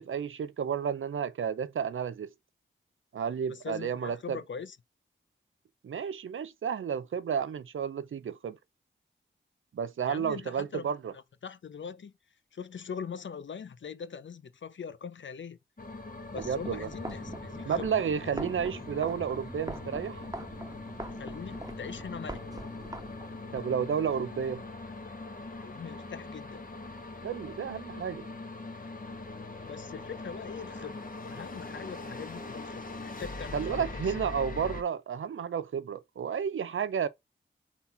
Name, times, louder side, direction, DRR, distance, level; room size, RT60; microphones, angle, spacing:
voice 1, 0.0-2.3 3.1-4.4 5.8-8.6 9.7-11.1 16.3-16.9 17.6-20.3 23.5-24.6 27.2-28.3 33.5-37.1, right 7 dB, 80° right, 0.7 m, -32 dB
voice 2, 3.5-4.8 10.0-10.9 11.1-12.1 12.5-15.6 16.3-18.0 18.2-18.5 21.2-22.4 25.5-26.6 29.7-31.0 31.3-34.1, left 6 dB, 70° left, 0.7 m, -42 dB
sound 1, 15.8-34.8, left 3 dB, 45° left, 1.3 m, -42 dB
sound 2, 16.3-23.7, right 1 dB, 15° right, 1.3 m, -43 dB
4.2 x 4.0 x 5.5 m
cardioid pair, 45°, 20 cm